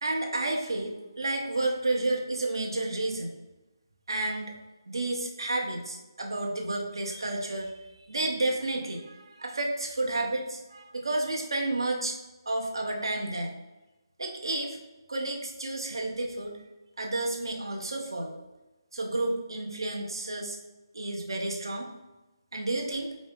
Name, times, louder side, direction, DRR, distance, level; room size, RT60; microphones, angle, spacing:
voice 1, 0.0-3.4 4.1-4.6 4.9-7.7 8.1-12.2 12.5-13.6 14.2-14.8 15.1-16.6 17.0-18.4 18.9-20.6 20.9-21.9 22.5-23.2, right 2 dB, 75° right, 1 dB, 0.9 m, -31 dB
5.0 x 2.0 x 3.7 m, 1.1 s
hypercardioid pair, 180°, 2 cm